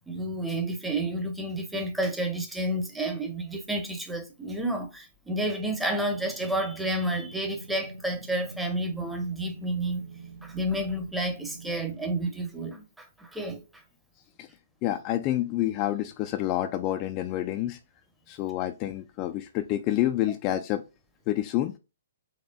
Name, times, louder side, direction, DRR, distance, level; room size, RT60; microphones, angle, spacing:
voice 1, 0.1-10.0 10.4-13.6, right 1 dB, 5° right, 0.7 m, -30 dB
sound 1, 5.8-12.5, right 3 dB, 80° right, 0.6 m, -46 dB
voice 2, 14.8-17.8 18.3-20.8 21.3-21.7, left 13 dB, 30° left, 0.3 m, -28 dB
4.3 x 3.1 x 2.2 m
figure-of-eight pair, 125°, 0 cm